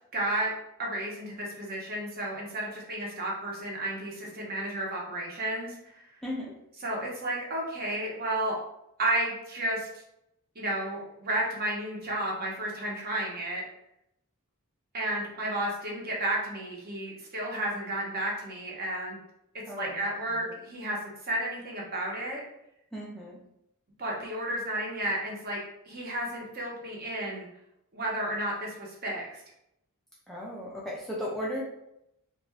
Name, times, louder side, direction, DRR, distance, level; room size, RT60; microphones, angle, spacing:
voice 1, 0.1-0.5 0.8-5.8 6.8-8.5 9.0-9.9 10.5-13.6 14.9-19.2 19.8-22.4 24.0-25.6 25.9-27.5 27.9-29.4, right 1 dB, 45° right, -3 dB, 0.8 m, -32 dB
voice 2, 6.2-6.6 19.7-20.1 20.3-20.6 22.9-23.4 30.3-31.6, equal, ahead, -5 dB, 0.3 m, -36 dB
2.6 x 2.2 x 3.2 m, 0.81 s
head